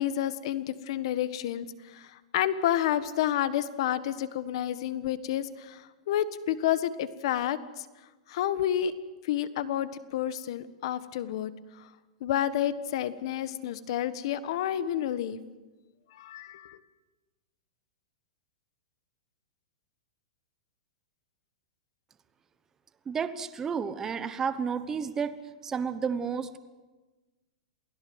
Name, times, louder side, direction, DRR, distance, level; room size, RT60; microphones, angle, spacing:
voice 1, 0.0-7.8 8.3-8.9 9.2-11.5 12.2-15.4 16.1-16.8, left 11 dB, 55° left, 14 dB, 1.4 m, -30 dB
voice 2, 23.1-26.6, right 6 dB, 15° right, 11 dB, 1.1 m, -31 dB
28.5 x 17.0 x 8.0 m, 1.2 s
supercardioid pair, 160°, 3 cm